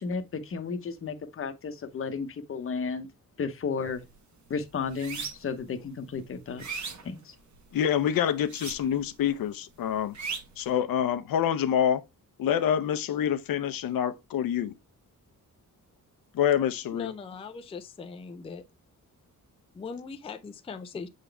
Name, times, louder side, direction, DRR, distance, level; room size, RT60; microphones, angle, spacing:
voice 1, 0.0-3.1 3.4-4.0 4.5-7.3, left 5 dB, 40° left, 0.8 m, -33 dB
sound 1, 3.8-4.1 4.5-5.6 6.1-7.8 8.4-9.2 9.4-10.7, right 5 dB, 55° right, 1.2 m, -38 dB
voice 2, 7.7-10.1 10.6-12.0 12.4-14.7 16.3-17.1, left 9 dB, 90° left, 0.7 m, -26 dB
voice 3, 16.9-18.6 19.7-21.1, left 5 dB, 20° left, 0.4 m, -40 dB
7.2 x 3.9 x 3.3 m
wide cardioid pair, 165°, 33 cm